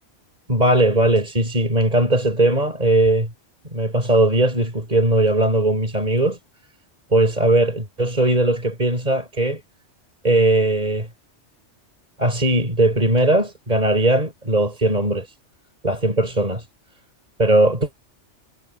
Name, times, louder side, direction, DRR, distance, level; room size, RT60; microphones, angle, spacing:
voice 1, 0.5-3.3 3.7-6.4 7.1-9.6 10.2-11.1 12.2-15.3 15.8-16.6 17.4-17.9, right 2 dB, 35° right, 5.1 m, -19 dB
omnidirectional pair, 1.2 m